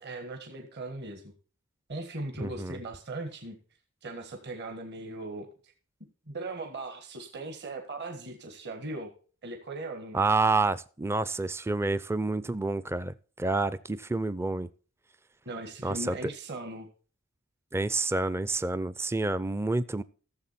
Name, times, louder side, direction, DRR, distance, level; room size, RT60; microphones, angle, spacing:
voice 1, 0.0-1.3 1.9-3.6 4.0-5.5 6.3-9.1 9.4-10.2 15.4-16.9, right 2 dB, 55° right, 4 dB, 1.7 m, -39 dB
voice 2, 2.4-2.8 10.1-14.7 15.8-16.1 17.7-20.0, right 3 dB, 10° right, 17 dB, 0.4 m, -28 dB
14.5 x 7.4 x 4.2 m, 0.39 s
head